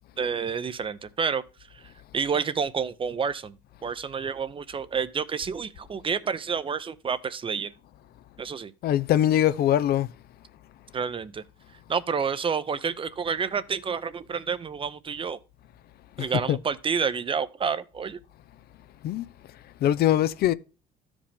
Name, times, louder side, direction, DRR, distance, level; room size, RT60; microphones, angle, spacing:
voice 1, 0.2-1.4 1.7-1.8 2.1-3.6 3.8-7.7 8.4-8.7 10.9-11.4 11.9-15.4 16.2-18.2, right 6 dB, 30° right, 0.7 m, -29 dB
voice 2, 8.8-10.1 16.2-16.6 19.0-19.3 19.8-20.5, left 11 dB, 65° left, 0.6 m, -22 dB
13.0 x 5.1 x 3.5 m
cardioid pair, 110°, 17 cm